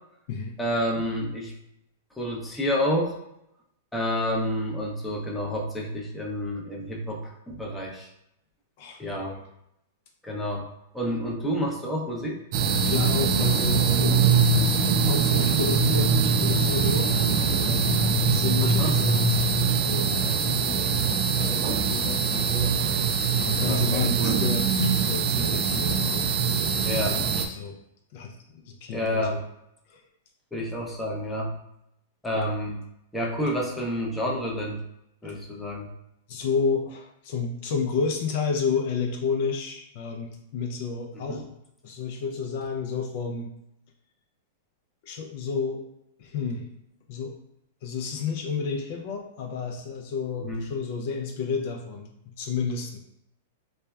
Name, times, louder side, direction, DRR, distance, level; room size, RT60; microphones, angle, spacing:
voice 1, 0.6-1.5 2.2-3.1 3.9-8.1 9.0-9.4 10.2-10.7 10.9-12.4 18.6-18.9 23.7-24.4 26.9-27.2 28.9-29.4 30.5-31.5 32.2-32.8 33.1-34.8 35.2-35.9 41.3-41.4 50.4-50.6, equal, 5° left, -3 dB, 0.6 m, -29 dB
voice 2, 8.8-9.4 12.8-14.2 15.0-17.1 17.6-23.0 23.4-26.3 27.0-27.7 28.1-29.4 29.9-30.0 35.2-35.4 36.3-41.5 41.8-43.5 45.0-45.8 46.2-46.7 47.1-47.3 47.8-53.0, left 5 dB, 55° left, 2 dB, 0.4 m, -31 dB
sound 1, 12.5-27.5, right 5 dB, 50° right, 0.3 m, -23 dB
3.2 x 2.1 x 2.3 m, 0.81 s
hypercardioid pair, 115°, 0 cm